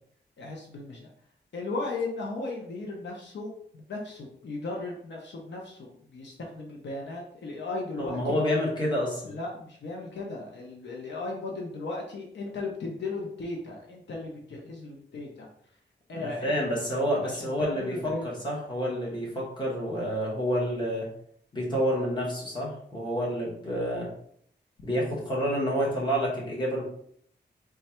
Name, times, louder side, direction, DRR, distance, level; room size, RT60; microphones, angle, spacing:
voice 1, 0.4-1.1 1.5-8.4 9.3-15.5 16.1-16.5 17.2-18.3, left 3 dB, 75° left, -1 dB, 0.8 m, -36 dB
voice 2, 8.0-9.3 16.1-21.1 21.5-24.1 24.8-26.8, equal, 25° left, -5 dB, 1.3 m, -29 dB
3.2 x 2.4 x 4.3 m, 0.66 s
wide cardioid pair, 160°, 18 cm